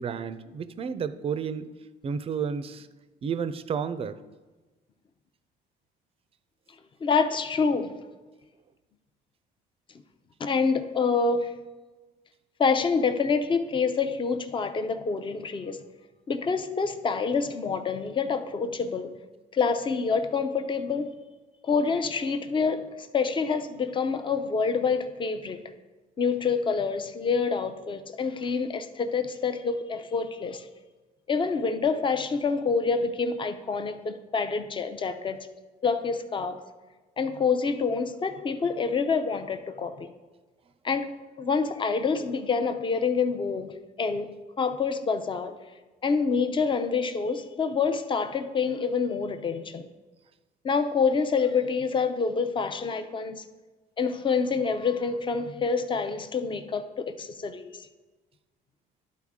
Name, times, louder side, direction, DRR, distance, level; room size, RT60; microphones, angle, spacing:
voice 1, 0.0-1.7 2.0-2.9 3.2-4.2, right 6 dB, 35° right, 13 dB, 0.4 m, -31 dB
voice 2, 7.0-8.0 10.4-11.5 12.6-15.8 16.3-19.2 19.5-21.1 21.6-25.6 26.2-30.7 31.3-35.5 35.8-36.6 37.2-40.1 40.8-41.1 41.4-43.7 44.0-45.6 46.0-49.9 50.6-53.4 54.0-57.9, left 5 dB, 30° left, 9 dB, 0.6 m, -27 dB
11.5 x 4.2 x 3.6 m, 1.2 s
cardioid pair, 110°, 17 cm